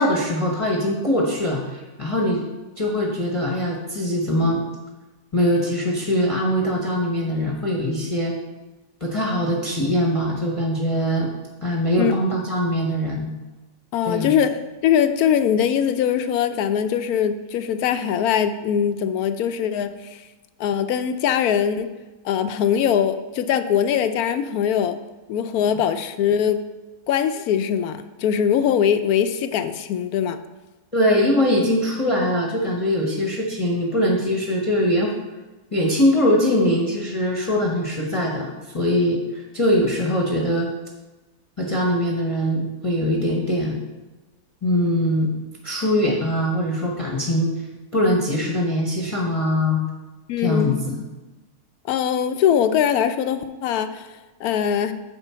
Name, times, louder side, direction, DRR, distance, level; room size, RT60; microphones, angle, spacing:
voice 1, 0.0-2.4 2.8-4.6 5.3-8.3 9.0-11.3 11.6-13.3 14.1-14.3 30.9-35.1 35.7-40.7 41.6-43.8 44.6-45.3 45.6-47.5 47.9-49.8 50.4-51.0, equal, 25° left, -2 dB, 0.9 m, -22 dB
voice 2, 13.9-20.2 20.6-21.9 22.2-25.0 25.3-26.7 27.1-30.4 50.3-51.0 51.9-54.1 54.4-54.9, left 8 dB, 80° left, 10 dB, 1.0 m, -22 dB
9.0 x 3.7 x 5.6 m, 1.2 s
omnidirectional pair, 1.6 m